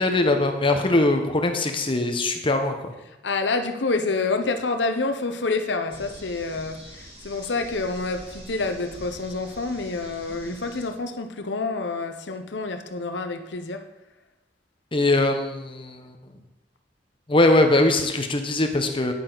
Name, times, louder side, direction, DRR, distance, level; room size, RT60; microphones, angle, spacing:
voice 1, 0.0-2.9 14.9-16.1 17.3-19.1, left 2 dB, 30° left, 6 dB, 0.9 m, -21 dB
voice 2, 3.2-13.8, left 3 dB, 75° left, 7 dB, 0.8 m, -28 dB
sound 1, 5.9-10.9, right 1 dB, 35° right, 2.2 m, -44 dB
9.8 x 8.8 x 3.9 m, 0.98 s
head